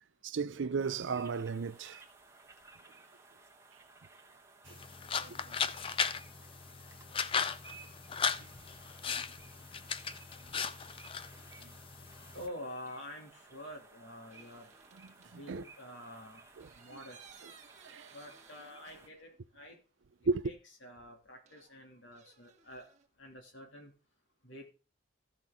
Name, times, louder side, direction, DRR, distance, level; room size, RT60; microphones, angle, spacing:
voice 1, 0.2-2.0 4.7-4.8 5.2-5.6 11.6-11.7 15.3-15.6 16.6-17.0 17.8-18.1 20.3-20.5, right 4 dB, 70° right, 0.5 m, -35 dB
sound 1, 0.8-19.1, right 3 dB, 15° right, 1.3 m, -58 dB
sound 2, 4.7-12.5, left 6 dB, 25° left, 0.4 m, -37 dB
voice 2, 12.3-14.7 15.4-16.4 16.7-17.3 18.1-19.8 20.4-20.6 20.8-22.9 23.2-23.9 24.4-24.7, left 1 dB, 75° left, 2.6 m, -48 dB
sound 3, 14.3-15.3 16.6-19.5 19.7-19.8 21.5-23.1, right 7 dB, 35° right, 1.4 m, -59 dB
14.5 x 6.0 x 3.7 m
head